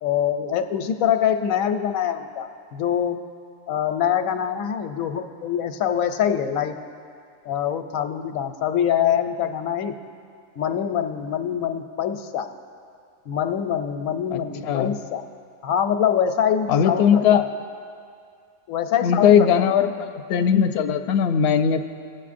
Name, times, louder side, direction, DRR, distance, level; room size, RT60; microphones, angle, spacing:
voice 1, 0.0-3.2 3.7-6.8 7.4-10.0 10.6-12.5 13.3-15.2 15.6-17.4 18.7-19.7, left 9 dB, 90° left, 7 dB, 1.0 m, -24 dB
voice 2, 14.3-14.9 16.7-17.4 19.0-19.9 20.3-21.8, left 8 dB, 65° left, 7 dB, 0.7 m, -19 dB
19.5 x 7.7 x 2.5 m, 2.3 s
omnidirectional pair, 1.4 m